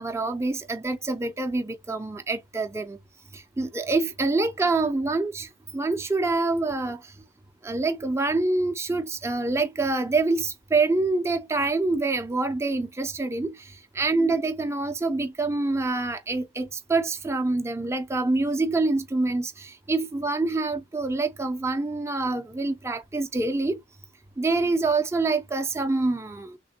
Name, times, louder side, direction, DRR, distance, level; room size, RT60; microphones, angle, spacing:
voice 1, 0.0-3.0 3.3-7.2 7.6-23.8 24.4-26.6, right 3 dB, 15° right, 0.4 m, -26 dB
3.4 x 2.9 x 2.7 m
head